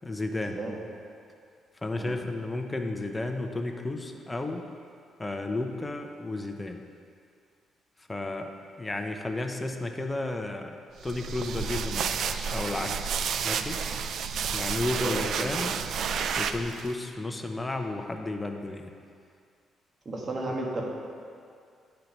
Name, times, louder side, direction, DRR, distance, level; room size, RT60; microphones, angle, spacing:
voice 1, 0.0-0.6 1.8-4.6 5.2-6.8 8.1-8.5 8.8-10.8 11.0-13.8 14.5-15.8 16.3-18.9, left 2 dB, 20° left, 5 dB, 0.7 m, -33 dB
sound 1, 11.0-16.9, right 6 dB, 65° right, 0.3 m, -31 dB
voice 2, 15.0-15.7 20.0-20.8, right 2 dB, 40° right, -1 dB, 1.5 m, -33 dB
9.5 x 4.5 x 5.1 m, 2.3 s
cardioid pair, 90°, 0 cm